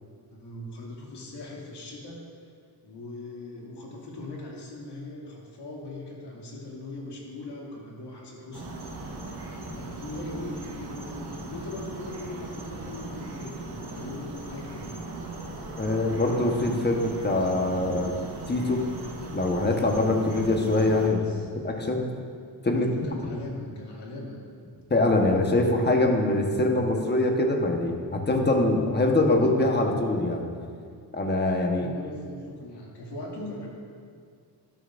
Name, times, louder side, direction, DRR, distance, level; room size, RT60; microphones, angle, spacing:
voice 1, 0.3-2.2 2.8-8.8 9.2-9.3 9.6-14.9 21.1-21.5 22.7-24.4 31.7-33.7, left 2 dB, 85° left, -3 dB, 2.5 m, -40 dB
sound 1, 8.5-21.1, right 2 dB, 65° right, 2.1 m, -39 dB
voice 2, 15.8-18.2 18.5-18.8 19.3-21.2 21.6-22.0 22.6-22.9 24.9-30.5 31.1-31.9, left 2 dB, 25° left, 2 dB, 1.2 m, -23 dB
13.0 x 12.5 x 2.6 m, 2.2 s
cardioid pair, 110°, 40 cm